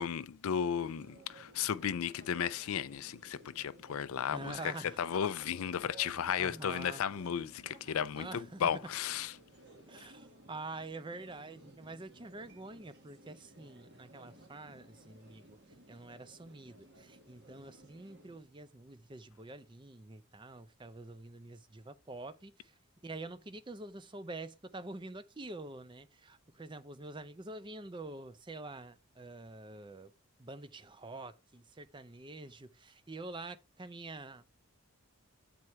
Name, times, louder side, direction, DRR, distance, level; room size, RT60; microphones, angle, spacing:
voice 1, 0.0-4.6 5.0-9.3, left 8 dB, 75° left, 0.4 m, -34 dB
sound 1, 0.8-18.4, right 1 dB, 50° right, 1.8 m, -58 dB
voice 2, 4.3-5.0 6.4-7.0 8.2-8.6 9.9-15.6 15.9-22.7 23.0-30.1 30.4-34.4, right 2 dB, 20° right, 0.5 m, -46 dB
8.0 x 4.3 x 4.6 m
head